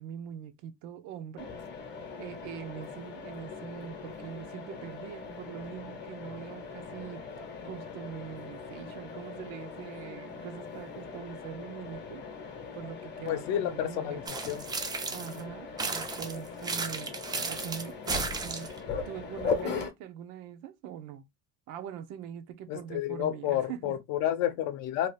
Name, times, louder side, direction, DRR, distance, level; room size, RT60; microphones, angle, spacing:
voice 1, 0.0-1.5 1.7-7.2 7.6-14.3 15.1-18.7 19.0-21.2 21.7-24.0, right 9 dB, 80° right, 0.7 m, -43 dB
Mechanisms, 1.4-19.9, left 5 dB, 35° left, 0.8 m, -40 dB
voice 2, 13.3-14.6 22.7-25.1, left 12 dB, 65° left, 0.6 m, -30 dB
sound 1, 14.3-15.4 15.8-18.8, right 4 dB, 15° right, 0.4 m, -34 dB
2.8 x 2.4 x 3.1 m
cardioid pair, 160°, 30 cm